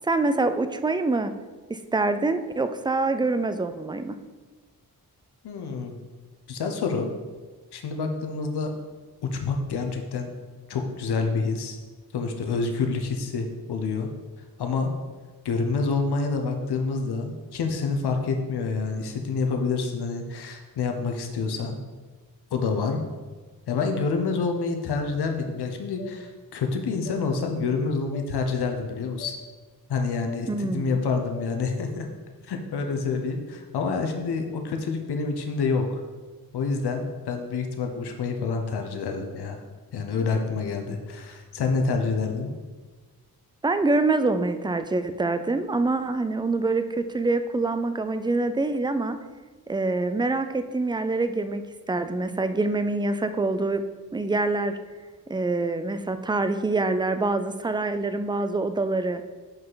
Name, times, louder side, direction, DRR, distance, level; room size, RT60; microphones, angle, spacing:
voice 1, 0.0-1.3 1.7-4.2 30.5-31.0 43.6-49.2 49.7-51.6 51.9-53.8 54.1-54.8 55.3-59.2, right 3 dB, 15° right, 9 dB, 0.3 m, -25 dB
voice 2, 5.4-5.9 6.5-7.1 7.7-8.7 9.2-10.3 10.7-11.8 12.1-14.1 14.6-14.9 15.4-21.8 22.5-23.0 23.7-29.3 29.9-32.1 32.5-35.8 36.5-39.6 39.9-42.5, left 4 dB, 90° left, 4 dB, 0.8 m, -27 dB
sound 1, 23.8-24.0 24.9-25.1 26.0-26.1 27.0-27.2 28.1-28.3 29.2-29.4 30.3-30.4 31.3-31.5, left 8 dB, 55° left, 1.6 m, -41 dB
5.7 x 5.4 x 4.0 m, 1.3 s
wide cardioid pair, 95°, 38 cm